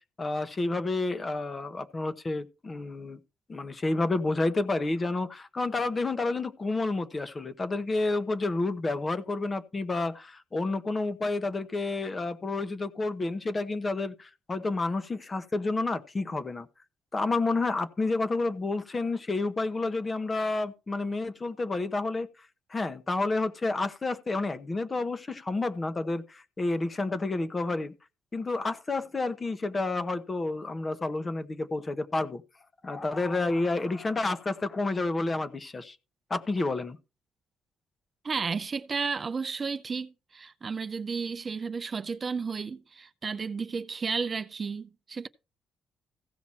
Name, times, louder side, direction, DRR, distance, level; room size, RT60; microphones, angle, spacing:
voice 1, 0.2-3.2 3.5-16.7 17.1-22.3 22.7-27.9 28.3-32.4 32.8-36.0 36.3-37.0, left 3 dB, 30° left, 1.0 m, -30 dB
voice 2, 38.2-45.3, right 5 dB, 35° right, 0.5 m, -33 dB
15.5 x 5.9 x 4.3 m
cardioid pair, 90°, 0 cm